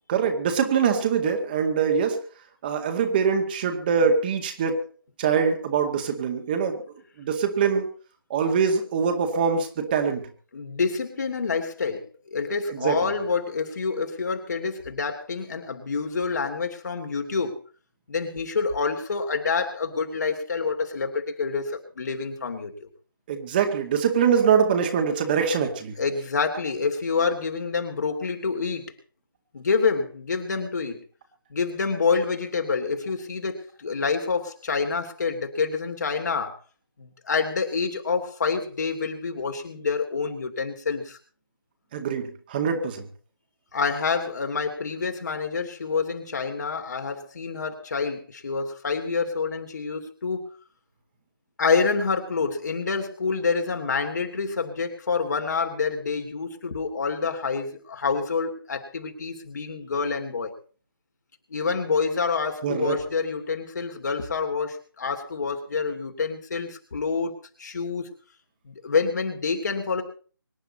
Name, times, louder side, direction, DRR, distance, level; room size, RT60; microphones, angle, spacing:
voice 1, 0.1-2.2 2.6-4.8 5.2-6.8 7.2-7.9 8.3-10.2 12.7-13.1 23.3-25.9 41.9-43.1 62.6-63.0, right 6 dB, 25° right, 4 dB, 2.1 m, -23 dB
voice 2, 10.5-17.6 18.1-22.9 26.0-28.9 29.5-31.0 31.5-36.5 37.0-41.2 43.7-50.5 51.6-60.5 61.5-67.3 67.6-68.1 68.6-70.0, left 5 dB, 50° left, 5 dB, 3.1 m, -27 dB
25.0 x 10.5 x 4.3 m, 0.40 s
figure-of-eight pair, 155°, 12 cm